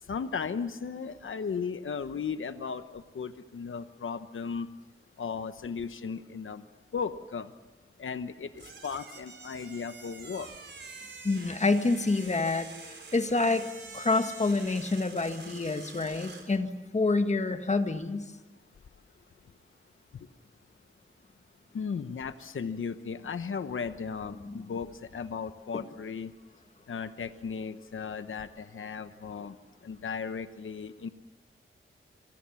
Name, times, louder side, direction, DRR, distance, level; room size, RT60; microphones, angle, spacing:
voice 1, 0.0-4.7 5.2-6.6 6.9-7.5 8.0-10.5 21.7-26.3 26.9-29.6 29.8-31.1, left 6 dB, 75° left, 10 dB, 1.0 m, -36 dB
sound 1, 8.5-16.5, right 4 dB, 60° right, 4.5 m, -47 dB
voice 2, 11.2-12.7 13.1-18.3 24.4-24.7, left 3 dB, 35° left, 8 dB, 1.6 m, -28 dB
27.5 x 24.0 x 7.2 m, 1.0 s
wide cardioid pair, 105°, 21 cm